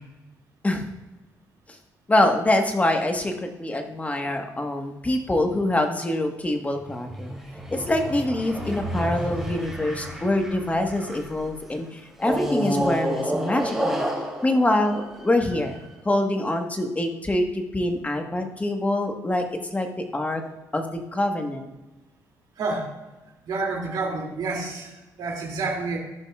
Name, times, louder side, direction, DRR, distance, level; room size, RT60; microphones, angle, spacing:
voice 1, 2.1-7.3 7.7-14.0 14.4-19.4 19.7-19.9 20.1-20.4 20.7-21.7, left 1 dB, 20° left, 5 dB, 1.3 m, -25 dB
sound 1, 6.7-11.4 12.2-15.8, right 1 dB, ahead, 2.8 m, -30 dB
voice 2, 22.6-22.9 23.4-24.9 25.2-26.0, right 3 dB, 70° right, -1 dB, 2.5 m, -28 dB
15.5 x 5.3 x 2.4 m, 1.1 s
cardioid pair, 70°, 7 cm